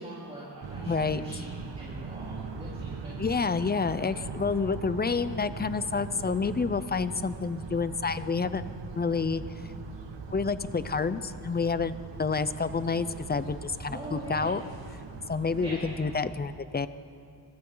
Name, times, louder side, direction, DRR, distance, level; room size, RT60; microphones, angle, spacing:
voice 1, 0.0-3.1 13.9-14.5 15.6-15.8, right 1 dB, 15° right, -8 dB, 4.2 m, -42 dB
sound 1, 0.6-16.3, right 4 dB, 80° right, 1.8 m, -40 dB
voice 2, 0.9-1.2 3.2-8.6 9.0-9.4 10.3-14.6 15.3-16.9, left 4 dB, 25° left, 13 dB, 0.6 m, -29 dB
27.5 x 25.0 x 3.9 m, 2.4 s
wide cardioid pair, 160°, 43 cm